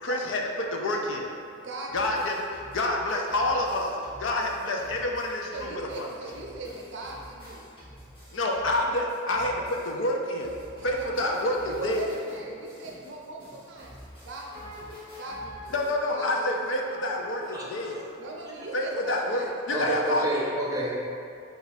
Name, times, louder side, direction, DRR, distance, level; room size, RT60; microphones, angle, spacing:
voice 1, 0.0-0.4 0.7-1.3 1.9-2.4 2.7-6.1 8.3-10.5 10.8-12.1 15.7-18.0 18.7-20.3, left 1 dB, 70° left, 1 dB, 0.4 m, -28 dB
voice 2, 1.6-2.3 5.5-7.7 10.8-11.4 11.7-13.9 14.2-15.8 16.1-16.7 18.2-20.3, right 2 dB, 60° right, -1 dB, 0.5 m, -40 dB
sound 1, 1.9-10.1 10.4-15.9, equal, 25° left, 1.1 m, -49 dB
Wind instrument woodwind instrument, 14.5-18.2, left 2 dB, 50° left, 1.4 m, -44 dB
voice 3, 17.5-18.0 19.7-20.9, right 1 dB, 15° right, -5 dB, 0.5 m, -29 dB
4.0 x 2.3 x 4.0 m, 2.4 s
head